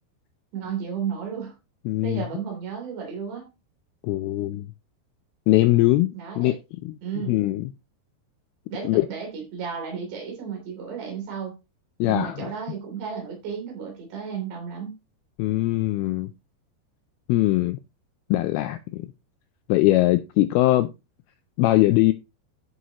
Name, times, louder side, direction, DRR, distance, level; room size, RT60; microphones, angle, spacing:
voice 1, 0.5-1.5 2.0-3.5 6.2-6.6 7.0-7.3 8.7-11.5 12.1-14.9, right 7 dB, 75° right, 5.2 m, -33 dB
voice 2, 1.9-2.2 4.0-4.7 5.5-6.5 6.9-7.0 7.3-7.7 8.8-9.0 12.0-12.5 15.4-16.3 17.3-17.8 18.3-19.0 19.7-20.9 21.6-22.1, left 17 dB, 85° left, 2.2 m, -21 dB
14.0 x 5.6 x 2.9 m
omnidirectional pair, 5.0 m